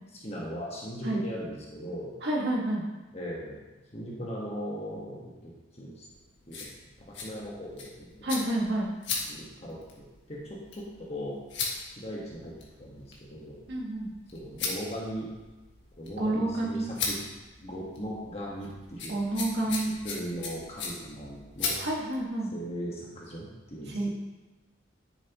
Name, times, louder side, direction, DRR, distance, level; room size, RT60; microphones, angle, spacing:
voice 1, 0.1-2.1 3.1-3.6 3.9-6.1 6.5-6.7 7.1-8.3 9.3-11.4 11.9-13.5 14.3-15.3 16.0-17.3 17.6-19.1 20.0-21.8 22.5-24.1, equal, 35° left, -4 dB, 1.4 m, -39 dB
voice 2, 2.2-2.8 8.2-8.9 13.7-14.1 16.2-16.9 19.1-19.9 21.8-22.5 23.9-24.1, right 1 dB, 55° right, -2 dB, 1.8 m, -29 dB
sound 1, 6.1-22.2, left 4 dB, 70° left, 1.8 m, -39 dB
10.5 x 7.4 x 3.0 m, 1.2 s
head